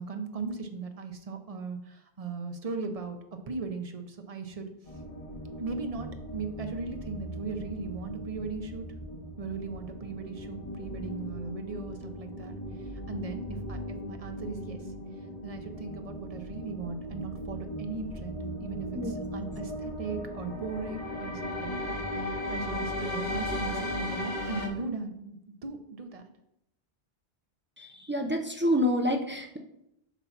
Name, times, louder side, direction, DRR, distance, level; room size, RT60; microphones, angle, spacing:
voice 1, 0.0-4.7 5.6-8.9 9.4-14.8 15.4-26.3, right 4 dB, 40° right, 6 dB, 0.7 m, -38 dB
sound 1, 4.8-24.7, equal, 35° left, 1.2 m, -37 dB
voice 2, 27.8-29.6, equal, 15° right, 3 dB, 0.4 m, -28 dB
8.3 x 2.9 x 5.8 m, 0.81 s
omnidirectional pair, 1.1 m